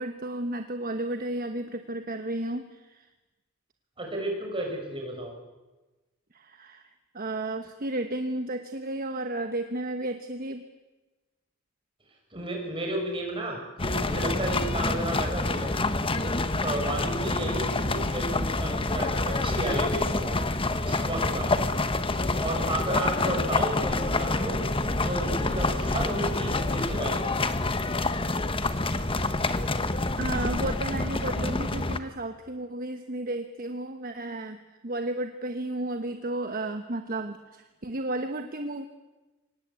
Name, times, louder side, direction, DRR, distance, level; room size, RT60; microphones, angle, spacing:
voice 1, 0.0-3.1 6.3-6.9 7.1-10.7 30.2-34.6 34.8-38.8, right 1 dB, 45° right, 7 dB, 1.2 m, -33 dB
voice 2, 4.0-5.3 12.3-15.7 16.1-20.4 20.9-21.5 22.4-24.6 25.0-27.5, right 1 dB, 25° right, 1 dB, 6.1 m, -33 dB
sound 1, 13.8-32.0, left 2 dB, 25° left, 1.2 m, -27 dB
25.0 x 19.5 x 8.3 m, 1.2 s
head